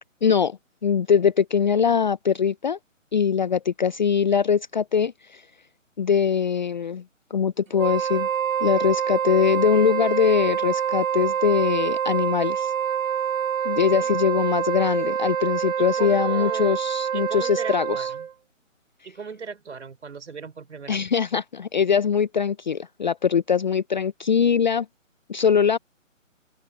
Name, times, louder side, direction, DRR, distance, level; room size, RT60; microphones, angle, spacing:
voice 1, 0.2-2.8 3.1-5.5 6.0-7.0 7.3-8.3 8.6-12.7 13.6-18.1 20.9-24.9 25.3-25.8, left 7 dB, 35° left, 0.7 m, -22 dB
Wind instrument woodwind instrument, 7.7-18.3, right 8 dB, 80° right, 1.5 m, -26 dB
voice 2, 15.8-16.8 17.1-18.3 19.0-21.0, right 5 dB, 60° right, 6.2 m, -37 dB
open air
figure-of-eight pair, 150°, 39 cm